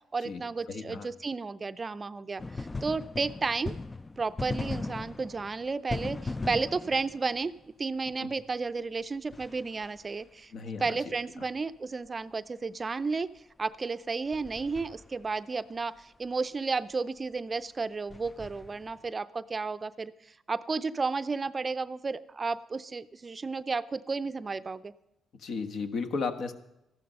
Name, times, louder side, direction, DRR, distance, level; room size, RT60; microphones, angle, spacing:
voice 1, 0.1-3.8 4.2-7.5 7.8-10.5 10.8-13.3 13.6-24.9, right 4 dB, 30° right, 14 dB, 0.5 m, -32 dB
voice 2, 0.7-1.1 8.2-8.3 10.5-11.1 25.4-26.5, left 4 dB, 65° left, 7 dB, 1.5 m, -34 dB
sound 1, 2.4-7.7 9.3-10.3 14.3-15.4 18.1-19.1, left 3 dB, 20° left, 0.4 m, -38 dB
14.0 x 12.0 x 5.4 m, 0.87 s
cardioid pair, 90°, 0 cm